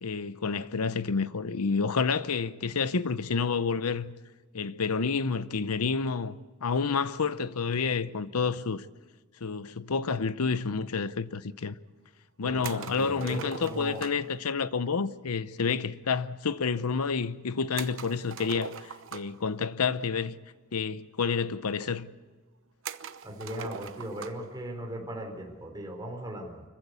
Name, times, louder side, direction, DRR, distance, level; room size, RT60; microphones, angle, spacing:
voice 1, 0.0-4.1 4.5-8.9 9.4-11.7 12.4-20.4 20.7-22.1, left 5 dB, 85° left, 0.8 m, -29 dB
voice 2, 12.4-14.0 23.2-26.6, right 1 dB, 20° right, 4.3 m, -38 dB
sound 1, 12.6-14.3 17.8-19.5 20.5-20.6 20.9-21.0 21.8-21.9 22.8-24.5, right 7 dB, 65° right, 0.9 m, -42 dB
25.0 x 15.5 x 8.2 m
head